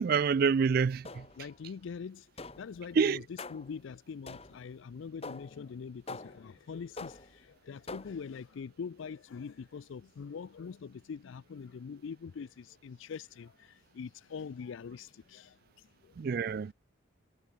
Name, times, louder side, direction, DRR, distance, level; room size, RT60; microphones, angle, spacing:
voice 1, 0.0-1.3 3.0-3.2 16.2-16.7, right 6 dB, 45° right, 0.3 m, -27 dB
sound 1, 1.0-1.6 2.4-2.8 3.4-3.8 4.3-4.7 5.2-5.6 6.1-6.5 7.0-7.4 7.9-8.3, left 3 dB, 30° left, 1.5 m, -45 dB
voice 2, 1.4-3.2 3.5-16.1, left 6 dB, 70° left, 0.4 m, -43 dB
head